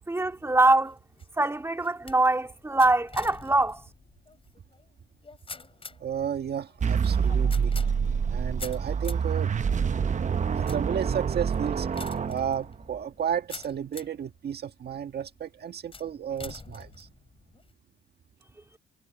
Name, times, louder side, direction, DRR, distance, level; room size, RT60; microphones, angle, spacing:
voice 1, 0.1-1.0 1.4-3.8, right 2 dB, 15° right, 2.5 m, -23 dB
sound 1, 0.7-14.3 14.8-15.3 15.9-17.7, left 4 dB, 25° left, 7.0 m, -46 dB
voice 2, 6.0-7.7 8.3-9.5 10.6-11.9 12.3-17.1, right 8 dB, 55° right, 1.7 m, -33 dB
sound 2, 6.8-13.0, right 6 dB, 40° right, 0.9 m, -27 dB
cardioid pair, 90°, 20 cm